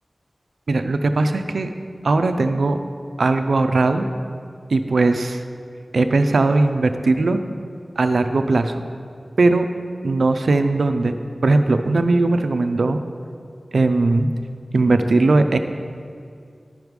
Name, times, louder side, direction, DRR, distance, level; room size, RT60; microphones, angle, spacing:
voice 1, 0.7-1.7 2.0-2.8 3.2-4.1 4.7-5.4 5.9-7.4 8.0-8.8 9.4-9.7 10.0-11.2 11.4-13.0 13.7-14.3 14.7-15.6, right 3 dB, 85° right, 8 dB, 0.4 m, -18 dB
11.0 x 4.7 x 5.2 m, 2.3 s
wide cardioid pair, 50°, 0 cm